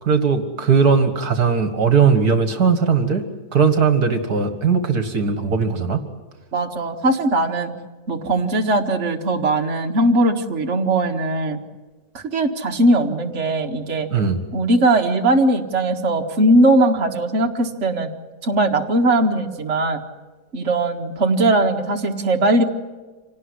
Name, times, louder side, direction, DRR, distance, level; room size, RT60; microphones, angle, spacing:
voice 1, 0.0-3.2 3.5-6.0 14.1-14.4, right 5 dB, 60° right, 8 dB, 2.2 m, -18 dB
voice 2, 6.5-7.7 8.1-11.6 12.1-14.1 14.5-18.1 18.4-20.0 20.5-22.6, right 1 dB, 45° right, 2 dB, 2.1 m, -19 dB
27.0 x 18.5 x 9.7 m, 1.3 s
omnidirectional pair, 1.9 m